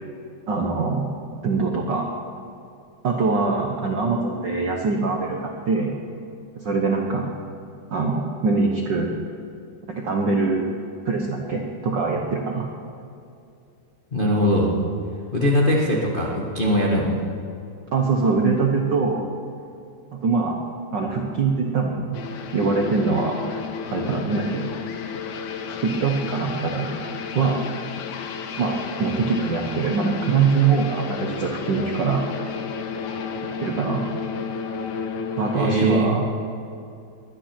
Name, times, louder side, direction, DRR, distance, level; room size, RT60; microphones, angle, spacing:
voice 1, 0.5-1.1 1.4-2.1 3.0-5.9 6.6-7.3 7.9-9.1 9.9-10.6 11.1-12.7 17.9-19.3 20.1-20.6 20.9-22.2 22.5-23.4 23.9-24.6 25.7-26.9 27.3-27.6 28.6-32.5 33.6-34.0 35.4-36.2, right 4 dB, 90° right, 1 dB, 0.9 m, -23 dB
voice 2, 14.1-14.7 15.3-17.2 35.5-36.1, equal, 35° left, -3 dB, 0.8 m, -21 dB
sound 1, 22.1-36.0, left 6 dB, 75° left, 2.3 m, -32 dB
22.0 x 10.5 x 5.9 m, 2.6 s
omnidirectional pair, 3.7 m